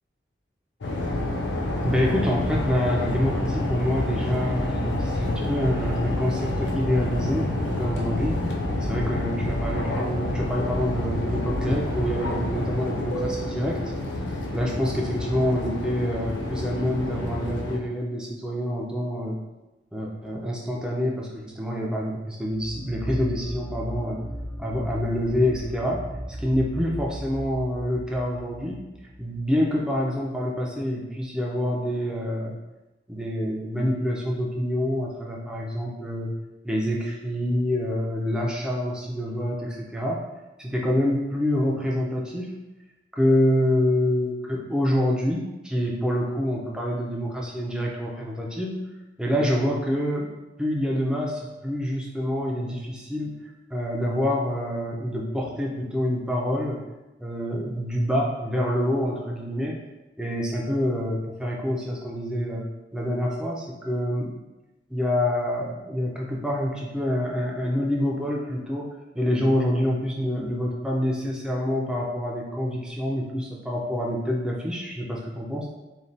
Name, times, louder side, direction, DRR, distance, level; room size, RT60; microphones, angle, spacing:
sound 1, 0.8-17.8, left 1 dB, 90° left, 0.4 m, -28 dB
voice 1, 1.8-8.4 8.8-13.8 14.5-19.4 19.9-24.2 24.6-26.0 26.4-28.8 29.2-32.5 33.1-36.3 36.6-40.2 40.6-42.5 43.1-48.8 49.2-50.3 50.6-56.8 57.2-59.8 60.2-62.6 62.9-64.3 64.9-68.9 69.1-75.7, equal, 5° right, -3 dB, 0.4 m, -26 dB
sound 2, 22.5-29.8, equal, 75° right, 0.6 m, -36 dB
3.1 x 2.2 x 2.6 m, 1.0 s
head